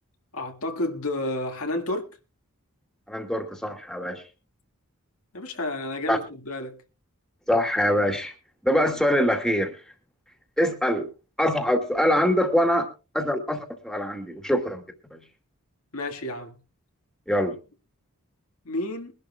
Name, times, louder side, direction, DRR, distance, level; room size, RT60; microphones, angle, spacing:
voice 1, 0.3-2.1 5.3-6.8 15.9-16.6 18.7-19.1, left 1 dB, 70° left, 2.0 m, -30 dB
voice 2, 3.1-4.2 6.1-6.2 7.5-8.3 8.6-9.8 10.6-11.1 11.4-12.9 13.1-14.8 15.1-15.2 17.3-17.6, equal, ahead, 2.3 m, -24 dB
22.5 x 11.5 x 2.4 m
head